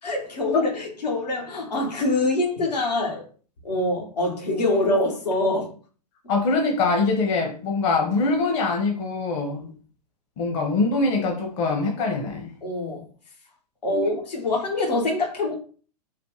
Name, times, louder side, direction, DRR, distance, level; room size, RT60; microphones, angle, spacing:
voice 1, 0.0-3.2 3.6-5.7 9.6-9.7 12.6-13.1 13.8-15.6, left 2 dB, 75° left, 1.5 m, -25 dB
voice 2, 6.3-9.6 10.4-12.5 13.9-14.1, left 3 dB, 40° left, 1.1 m, -23 dB
4.1 x 2.5 x 3.1 m
figure-of-eight pair, 105°, 21 cm